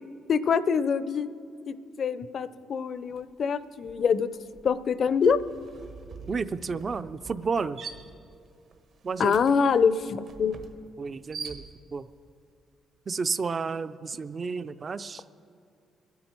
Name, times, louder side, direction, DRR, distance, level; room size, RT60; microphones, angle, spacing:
voice 1, 0.3-1.3 1.7-4.3 4.6-5.4 9.2-10.5, left 6 dB, 55° left, 15 dB, 0.5 m, -25 dB
sound 1, 3.1-3.4 3.7-12.1, right 5 dB, 60° right, 1.2 m, -45 dB
voice 2, 6.3-7.8 9.0-9.4 11.0-11.6 11.9-12.1 13.1-15.4, right 5 dB, 40° right, 14 dB, 0.4 m, -31 dB
22.0 x 9.6 x 4.5 m, 2.4 s
cardioid pair, 90°, 0 cm